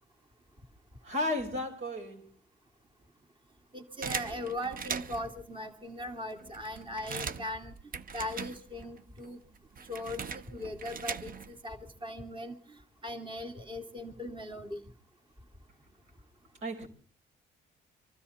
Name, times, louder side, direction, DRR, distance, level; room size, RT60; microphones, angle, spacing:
voice 1, 1.0-2.3 16.6-16.9, left 1 dB, 80° right, 5.5 m, -33 dB
voice 2, 3.7-7.7 8.1-9.4 9.9-12.6 13.0-14.8, left 1 dB, 25° right, 2.6 m, -39 dB
sound 1, 4.0-5.4 6.0-6.1 6.3-9.0 9.2-11.6, right 6 dB, 45° right, 0.9 m, -40 dB
25.5 x 13.5 x 4.3 m
cardioid pair, 90°, 20 cm